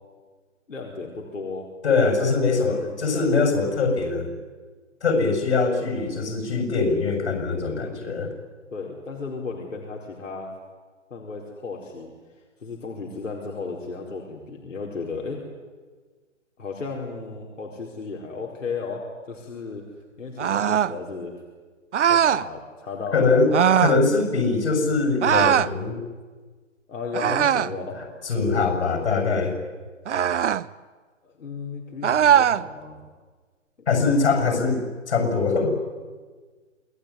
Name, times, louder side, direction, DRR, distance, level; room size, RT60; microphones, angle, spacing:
voice 1, 0.7-1.7 2.1-2.7 8.7-10.5 11.1-12.1 12.6-15.4 16.6-19.9 20.2-21.3 22.1-23.3 26.9-28.0 31.2-33.0, left 4 dB, 80° left, -1 dB, 4.6 m, -34 dB
voice 2, 1.8-4.3 5.0-8.3 23.1-23.5 23.8-26.0 28.2-29.5 33.9-35.8, left 4 dB, 60° left, 6 dB, 7.3 m, -22 dB
sound 1, 20.4-21.0 21.9-22.5 23.5-24.0 25.2-25.7 27.1-27.8 30.1-30.6 32.0-32.6, right 9 dB, 65° right, 0.9 m, -20 dB
28.0 x 19.5 x 9.8 m, 1.4 s
figure-of-eight pair, 140°, 38 cm